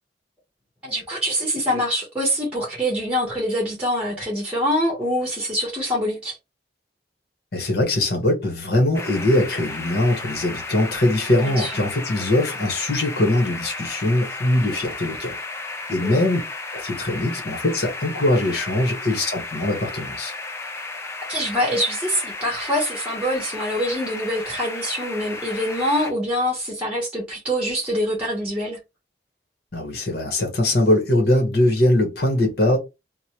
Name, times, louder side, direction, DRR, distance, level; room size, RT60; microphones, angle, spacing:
voice 1, 0.8-6.4 11.4-11.7 16.0-16.2 21.3-28.8, equal, 5° right, 1.0 m, -25 dB
voice 2, 7.5-15.4 15.9-16.4 16.7-20.3 29.7-32.8, left 1 dB, 60° left, 1.2 m, -21 dB
sound 1, 8.9-26.1, left 3 dB, 15° left, 0.4 m, -34 dB
2.9 x 2.2 x 2.8 m
head